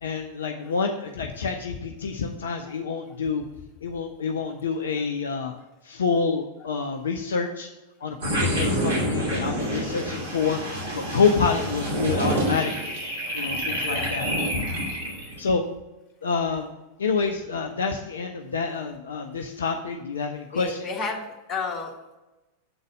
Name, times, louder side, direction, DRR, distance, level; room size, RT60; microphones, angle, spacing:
voice 1, 0.0-3.4 3.8-5.5 5.8-7.7 8.0-10.6 10.9-12.9 13.3-14.3 14.5-14.6 15.4-15.7 16.2-16.7 17.0-20.8, left 5 dB, 65° left, 4 dB, 0.6 m, -27 dB
sound 1, 8.2-15.4, equal, 55° right, 2.5 m, -27 dB
voice 2, 13.7-14.1 20.5-22.2, left 4 dB, 30° left, 0 dB, 1.6 m, -33 dB
7.8 x 4.0 x 6.3 m, 1.0 s
figure-of-eight pair, 90°, 0 cm